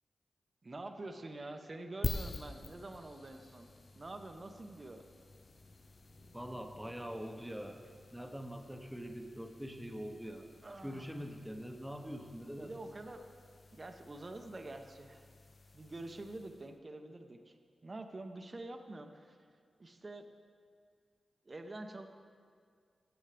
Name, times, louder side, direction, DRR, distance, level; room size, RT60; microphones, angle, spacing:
voice 1, 0.6-5.0 10.6-11.2 12.6-13.3 13.7-15.2 15.7-17.6 17.8-19.4 19.8-20.3 21.4-22.1, right 2 dB, 40° right, 6 dB, 0.8 m, -46 dB
sound 1, 2.0-16.8, left 3 dB, 50° left, 0.5 m, -48 dB
sound 2, 3.8-8.9, left 1 dB, 65° left, 1.3 m, -64 dB
voice 2, 6.3-7.8 8.1-10.5 10.8-12.7, equal, 5° right, 4 dB, 1.1 m, -44 dB
15.5 x 7.1 x 3.4 m, 2.2 s
cardioid pair, 50°, 0 cm